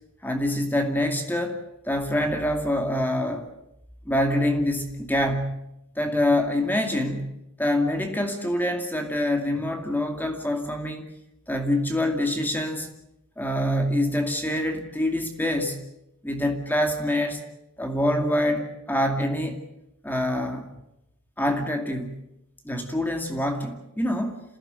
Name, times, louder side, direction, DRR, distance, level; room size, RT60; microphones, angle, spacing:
voice 1, 0.2-3.5 4.1-5.6 6.0-7.3 7.6-11.1 11.5-12.9 13.4-15.8 16.2-17.4 17.8-19.6 20.0-20.7 21.4-22.2 22.6-24.4, left 1 dB, 10° left, 4 dB, 2.3 m, -25 dB
27.5 x 16.0 x 8.9 m, 0.86 s
head